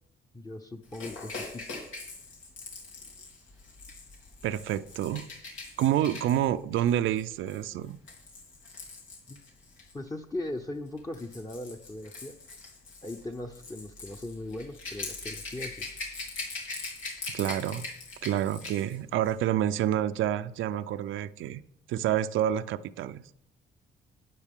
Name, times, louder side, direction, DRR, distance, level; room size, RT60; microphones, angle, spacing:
voice 1, 0.3-1.6 9.3-9.4 9.9-12.4 13.0-15.9, left 1 dB, 20° left, 0.8 m, -39 dB
Rattle / Rattle (instrument), 0.9-9.9 10.9-19.0 19.3-19.4, left 3 dB, 85° left, 2.8 m, -42 dB
voice 2, 4.4-5.3 5.8-8.0 17.3-17.9 18.2-21.6 21.9-23.2, right 11 dB, 80° right, 0.5 m, -28 dB
12.0 x 9.1 x 3.7 m
cardioid pair, 90°, 20 cm